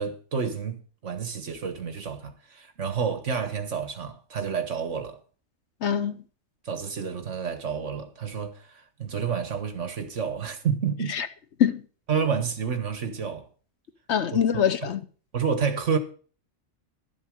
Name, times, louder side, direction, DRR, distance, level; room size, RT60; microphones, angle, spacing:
voice 1, 0.0-5.2 6.6-11.2 12.1-13.5 14.5-14.9 15.3-16.0, right 6 dB, 70° right, 1.7 m, -29 dB
voice 2, 5.8-6.2 11.1-11.3 11.6-11.8 14.1-15.0, left 8 dB, 65° left, 1.0 m, -23 dB
12.0 x 7.3 x 6.4 m
omnidirectional pair, 1.3 m